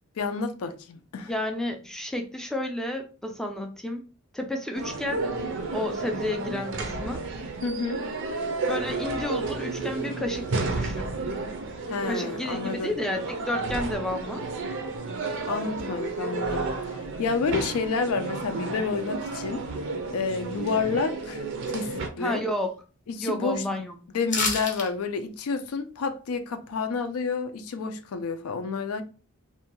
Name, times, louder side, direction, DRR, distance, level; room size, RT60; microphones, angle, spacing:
voice 1, 0.2-1.3 7.6-8.0 11.9-12.9 15.5-19.6 20.1-22.4 23.1-23.6 24.1-29.0, left 4 dB, 75° left, 0.4 m, -30 dB
voice 2, 1.3-4.1 4.3-5.3 5.7-7.2 8.7-11.1 12.0-13.2 13.5-14.5 22.2-22.7 23.2-24.0, left 1 dB, ahead, 0.3 m, -31 dB
sound 1, 4.7-22.1, right 3 dB, 55° right, 0.5 m, -32 dB
sound 2, 24.3-24.9 25.2-25.3, left 4 dB, 35° left, 0.8 m, -27 dB
2.6 x 2.2 x 2.9 m
head